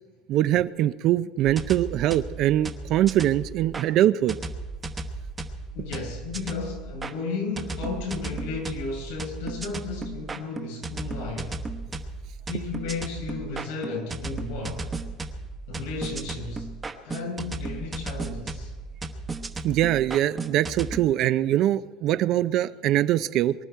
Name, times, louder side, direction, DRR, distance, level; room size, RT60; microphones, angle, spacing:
voice 1, 0.3-4.4 19.6-23.5, right 13 dB, 45° right, 0.5 m, -23 dB
sound 1, 1.4-3.9 4.3-7.1 7.6-21.0, right 3 dB, 15° right, 1.0 m, -35 dB
voice 2, 5.7-11.6 12.5-14.9 15.7-16.7 17.0-18.7, left 4 dB, 85° left, 7.3 m, -34 dB
23.5 x 12.0 x 4.6 m
cardioid pair, 160°, 0 cm